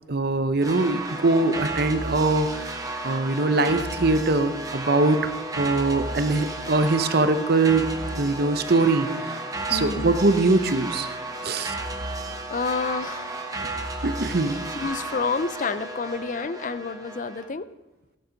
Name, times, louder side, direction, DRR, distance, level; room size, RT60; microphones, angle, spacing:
voice 1, 0.1-7.9 8.2-9.4 9.7-11.1 11.4-12.3 14.0-14.6, right 3 dB, 55° right, 10 dB, 0.9 m, -23 dB
sound 1, 0.6-17.5, right 2 dB, 20° right, 1.3 m, -33 dB
voice 2, 9.7-10.1 12.5-13.4 14.7-17.7, left 4 dB, 45° left, 15 dB, 0.5 m, -29 dB
15.0 x 11.0 x 5.2 m, 1.0 s
head